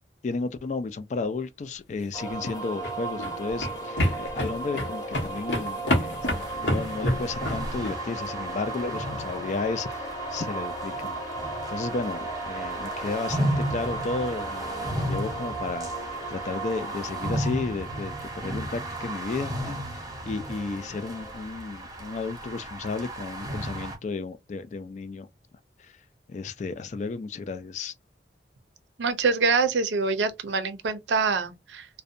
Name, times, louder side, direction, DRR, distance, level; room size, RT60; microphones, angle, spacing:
voice 1, 0.2-11.2 11.7-25.3 25.8-25.9 26.3-27.9, left 3 dB, 40° left, 0.3 m, -33 dB
sound 1, 2.1-21.4, right 2 dB, 20° left, 0.8 m, -36 dB
sound 2, 2.3-8.0, equal, 80° left, 0.8 m, -29 dB
sound 3, 6.2-24.0, right 1 dB, 20° right, 0.7 m, -35 dB
voice 2, 29.0-31.9, right 4 dB, 85° right, 0.5 m, -25 dB
2.6 x 2.1 x 2.5 m
head